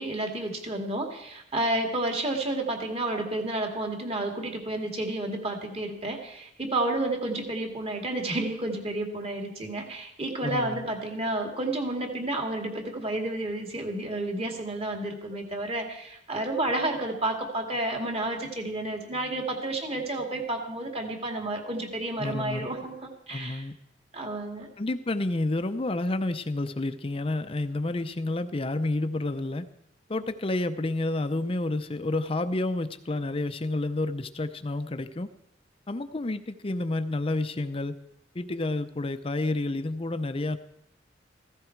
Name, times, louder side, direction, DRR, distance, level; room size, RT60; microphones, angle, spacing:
voice 1, 0.0-23.6 24.1-24.7, right 2 dB, 35° right, 3 dB, 2.1 m, -31 dB
voice 2, 10.4-10.9 22.2-22.7 23.3-23.7 24.8-29.7 30.1-35.3 35.9-37.9 38.3-40.6, left 2 dB, 30° left, 10 dB, 0.6 m, -29 dB
15.5 x 15.0 x 4.5 m, 0.81 s
head